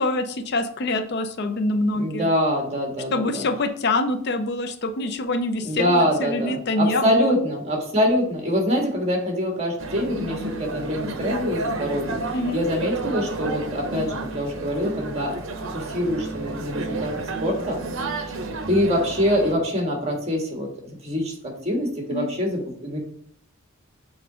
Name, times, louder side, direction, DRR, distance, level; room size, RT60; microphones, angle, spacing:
voice 1, 0.0-2.3 3.1-7.3 12.3-12.6 22.1-22.3, left 2 dB, 50° left, 9 dB, 0.5 m, -25 dB
voice 2, 1.9-3.4 5.6-12.2 12.5-15.4 15.7-17.1 17.4-17.8 18.0-18.3 18.7-23.0, equal, 30° right, 1 dB, 1.6 m, -24 dB
sound 1, 9.8-19.5, right 2 dB, 65° right, 0.8 m, -31 dB
6.8 x 3.9 x 4.9 m, 0.64 s
head